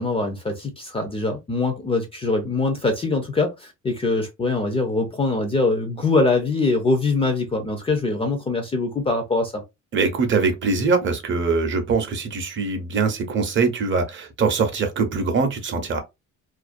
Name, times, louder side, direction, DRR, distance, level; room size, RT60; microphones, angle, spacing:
voice 1, 0.0-9.6, left 3 dB, 20° left, 0.4 m, -23 dB
voice 2, 9.9-16.0, right 4 dB, 40° right, 0.6 m, -22 dB
2.4 x 2.1 x 2.4 m
cardioid pair, 155°, 31 cm